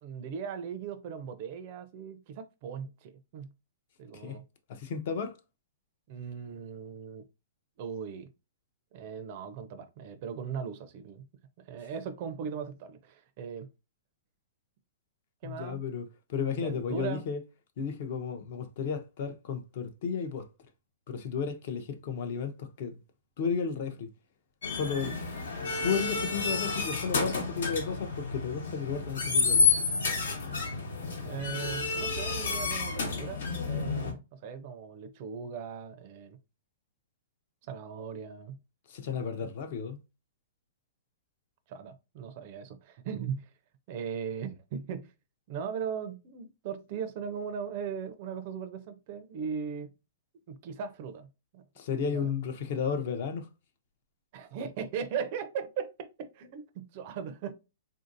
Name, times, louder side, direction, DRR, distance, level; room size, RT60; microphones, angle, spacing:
voice 1, 0.0-3.5 4.0-4.4 6.1-7.2 7.8-8.3 8.9-11.3 11.6-13.7 15.4-15.8 16.5-17.2 31.3-36.4 37.6-38.6 39.4-39.5 41.7-43.5 43.9-45.1 45.5-49.9 50.5-51.6 52.0-52.3 54.3-57.5, right 7 dB, 35° right, 0.4 m, -38 dB
voice 2, 4.7-5.3 15.4-17.4 17.8-20.5 21.1-23.0 23.4-24.1 24.7-25.2 25.8-29.7 38.9-40.0 51.8-53.5, left 6 dB, 45° left, 0.5 m, -33 dB
sound 1, 24.6-34.1, left 4 dB, 80° left, 1.1 m, -30 dB
3.6 x 2.5 x 2.5 m
hypercardioid pair, 170°, 0 cm